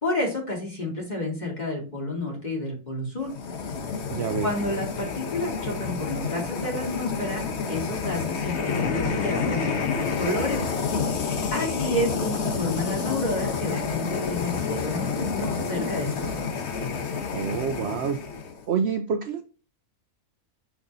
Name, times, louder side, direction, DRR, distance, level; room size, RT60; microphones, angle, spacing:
voice 1, 0.0-3.3 4.4-10.6 11.0-11.2 11.5-16.5, left 1 dB, 30° left, -1 dB, 2.7 m, -30 dB
sound 1, 3.2-18.6, left 5 dB, 50° left, 1.2 m, -29 dB
voice 2, 4.1-4.5 17.3-18.2 18.7-19.4, right 6 dB, 60° right, 8 dB, 0.7 m, -27 dB
6.5 x 6.0 x 2.7 m, 0.36 s
omnidirectional pair, 1.6 m